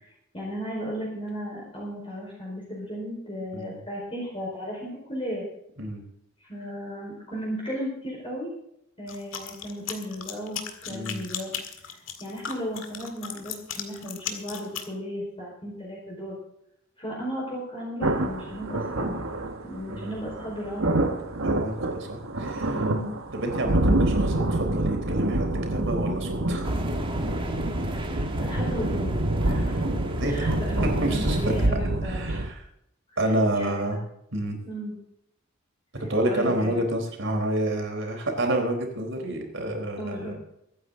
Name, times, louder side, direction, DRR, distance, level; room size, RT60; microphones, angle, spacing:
voice 1, 0.3-5.4 6.4-8.5 9.0-11.5 12.2-16.4 17.0-19.2 19.6-21.2 22.7-23.1 28.0-30.0 30.2-32.4 33.1-33.2 33.5-34.0 34.6-34.9 36.3-36.8 40.0-40.3, equal, 25° left, -4 dB, 4.7 m, -35 dB
sound 1, 9.1-14.9, left 8 dB, 70° left, 1.9 m, -36 dB
voice 2, 10.9-11.3 19.9-20.2 21.4-22.8 23.3-26.7 30.2-30.5 31.0-31.4 32.0-32.6 33.2-34.0 34.3-34.6 36.1-40.3, right 1 dB, 65° right, 3 dB, 4.0 m, -29 dB
sound 2, 18.0-32.5, right 1 dB, 80° right, 1.5 m, -27 dB
sound 3, 26.6-31.7, right 1 dB, 25° right, 1.6 m, -34 dB
23.5 x 9.4 x 3.9 m, 0.77 s
head